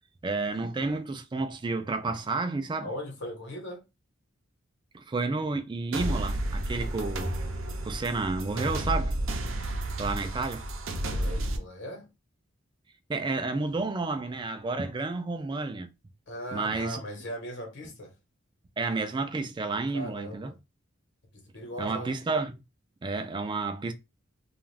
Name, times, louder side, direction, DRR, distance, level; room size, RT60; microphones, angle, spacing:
voice 1, 0.2-2.9 4.9-7.3 7.8-9.1 10.0-10.6 13.1-15.9 16.5-17.0 18.8-20.5 21.8-22.5 23.0-23.9, right 3 dB, 25° right, 0.4 m, -31 dB
voice 2, 2.8-3.8 11.0-12.1 16.3-18.1 19.9-20.6 21.3-22.2, equal, 65° left, 1.0 m, -39 dB
sound 1, 5.9-11.6, right 1 dB, 75° right, 0.6 m, -31 dB
2.4 x 2.4 x 3.2 m
head